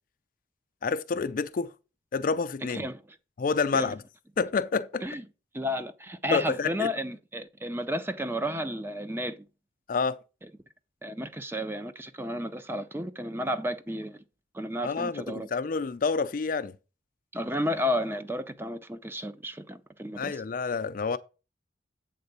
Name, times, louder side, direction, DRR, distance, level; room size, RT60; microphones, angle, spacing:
voice 1, 0.8-1.7 2.1-2.9 3.4-4.0 4.4-5.0 6.3-6.9 9.9-10.2 14.8-16.7 20.2-21.2, left 4 dB, 45° left, 0.4 m, -28 dB
voice 2, 5.5-9.4 11.0-14.2 14.5-15.5 17.3-20.4, equal, 10° right, 0.5 m, -32 dB
8.0 x 3.7 x 6.7 m
head